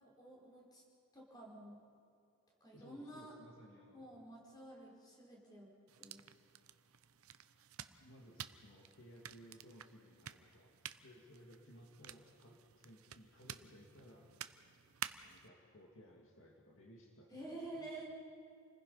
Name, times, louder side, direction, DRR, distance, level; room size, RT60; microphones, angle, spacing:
voice 1, 0.2-0.8 1.1-1.8 2.6-3.3 3.9-5.7 6.0-6.2 17.3-18.0, right 1 dB, 20° left, -2 dB, 4.9 m, -50 dB
voice 2, 2.7-4.3 8.0-10.7 11.0-14.3 15.2-17.9, equal, 65° left, 0 dB, 2.3 m, -60 dB
sound 1, 5.9-15.5, right 10 dB, 90° right, 0.8 m, -52 dB
29.5 x 20.0 x 5.6 m, 2.4 s
head